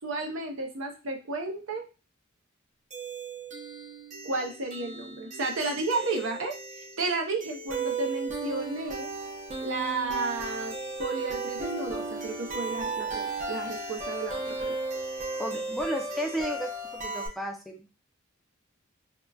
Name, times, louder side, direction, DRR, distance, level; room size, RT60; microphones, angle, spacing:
voice 1, 0.0-1.8 4.2-9.1 9.6-14.8, right 3 dB, 75° right, 3 dB, 0.7 m, -33 dB
sound 1, 2.9-17.3, right 3 dB, 35° right, 0.7 m, -35 dB
voice 2, 15.3-17.9, equal, ahead, 2 dB, 0.5 m, -33 dB
3.7 x 2.2 x 2.3 m, 0.31 s
head